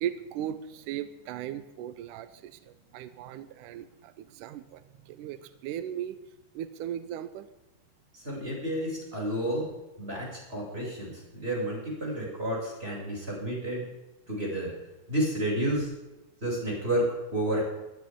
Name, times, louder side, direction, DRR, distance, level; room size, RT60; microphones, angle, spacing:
voice 1, 0.0-4.8 5.1-6.2 6.6-7.5, right 10 dB, 80° right, 12 dB, 2.2 m, -37 dB
voice 2, 8.1-9.7 10.0-13.8 14.3-14.7 15.1-15.9 16.4-17.1 17.3-17.6, right 1 dB, 15° right, -4 dB, 7.4 m, -30 dB
21.0 x 15.0 x 3.8 m, 1.0 s
omnidirectional pair, 3.7 m